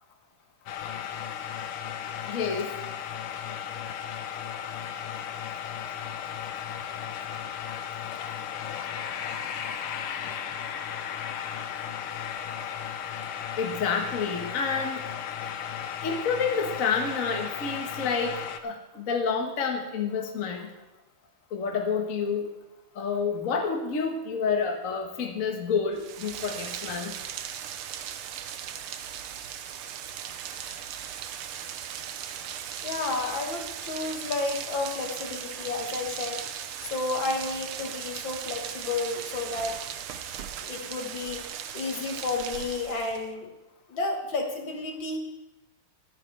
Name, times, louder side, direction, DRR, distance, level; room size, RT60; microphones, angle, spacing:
sound 1, 0.7-18.6, left 8 dB, 90° left, 1.8 m, -35 dB
voice 1, 2.3-2.7 13.6-15.0 16.0-20.7 21.5-22.5 22.9-27.1, left 5 dB, 45° left, 2 dB, 1.5 m, -29 dB
Rain, 25.9-43.3, right 9 dB, 90° right, 1.7 m, -38 dB
voice 2, 32.8-36.5 36.8-39.8 40.6-41.4 41.7-43.5 43.9-45.2, left 3 dB, 65° left, 2 dB, 2.3 m, -31 dB
25.0 x 8.9 x 3.4 m, 0.98 s
omnidirectional pair, 2.3 m